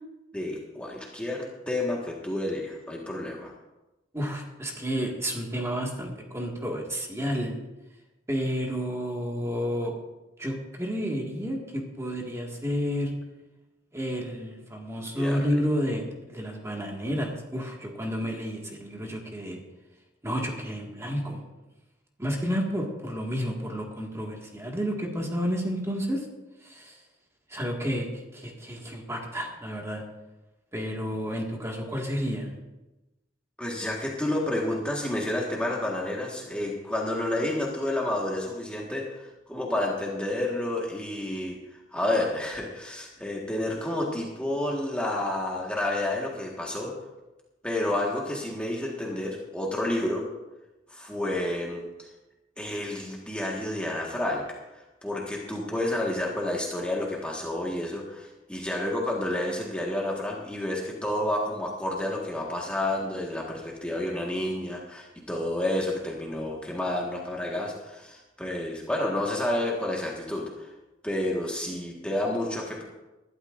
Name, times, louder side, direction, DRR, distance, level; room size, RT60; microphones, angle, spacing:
voice 1, 0.3-3.5 15.1-15.6 33.6-41.6 41.9-46.9 47.6-50.3 50.9-51.8 52.6-54.4 54.7-70.7 71.0-72.8, left 1 dB, 5° left, -3 dB, 1.6 m, -30 dB
voice 2, 4.1-7.6 8.3-9.9 10.4-13.1 13.9-19.6 20.2-21.4 22.2-26.3 26.6-27.0 27.5-28.1 28.3-30.0 30.7-32.6, equal, 15° right, -1 dB, 1.9 m, -31 dB
20.5 x 12.0 x 2.6 m, 1.0 s
head